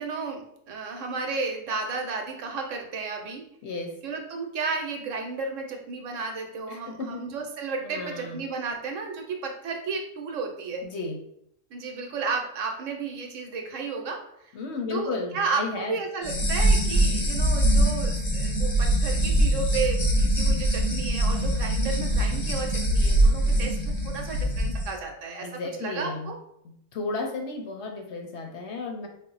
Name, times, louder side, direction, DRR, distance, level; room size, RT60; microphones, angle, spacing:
voice 1, 0.0-3.5 4.0-10.8 11.7-14.5 14.9-26.4, right 4 dB, 75° right, 3 dB, 1.0 m, -33 dB
voice 2, 6.7-7.2 7.8-8.4 10.8-11.2 14.5-15.9 23.4-23.8 25.4-26.3 26.9-29.1, left 3 dB, 65° left, 2 dB, 0.8 m, -33 dB
sound 1, 16.2-24.9, right 1 dB, 40° left, 0.4 m, -23 dB
4.0 x 2.1 x 3.9 m, 0.73 s
omnidirectional pair, 1.4 m